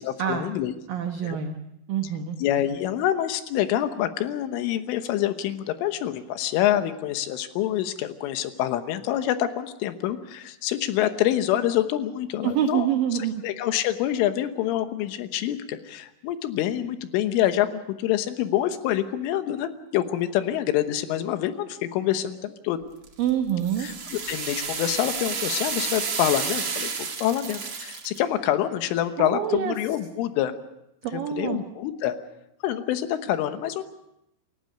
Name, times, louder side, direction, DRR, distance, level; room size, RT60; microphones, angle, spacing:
voice 1, 0.0-0.8 1.2-1.4 2.4-12.9 13.4-22.8 23.8-30.5 31.3-32.2 32.6-33.8, left 12 dB, 80° left, 9 dB, 3.6 m, -26 dB
voice 2, 0.9-1.6 1.9-2.4 12.4-13.4 23.2-23.9 29.2-29.8 31.0-31.6, right 10 dB, 85° right, 6 dB, 2.0 m, -26 dB
sound 1, 23.0-28.2, right 5 dB, 65° right, 1.1 m, -31 dB
28.5 x 15.0 x 6.6 m, 0.86 s
omnidirectional pair, 5.7 m